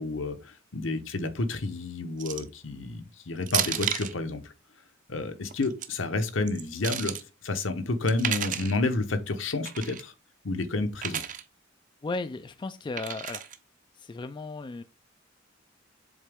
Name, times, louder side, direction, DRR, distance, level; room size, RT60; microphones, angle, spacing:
voice 1, 0.0-4.5 5.1-7.2 7.4-10.1 10.4-11.2, left 2 dB, 70° left, 0.9 m, -30 dB
sound 1, 2.2-2.6 3.5-4.1 5.5-5.9 6.5-7.2 8.1-8.8 9.7-10.0 11.0-11.4 13.0-13.6, right 9 dB, 40° right, 0.6 m, -32 dB
voice 2, 12.0-13.4 13.9-14.8, left 3 dB, 25° left, 0.3 m, -35 dB
7.3 x 3.9 x 3.5 m
head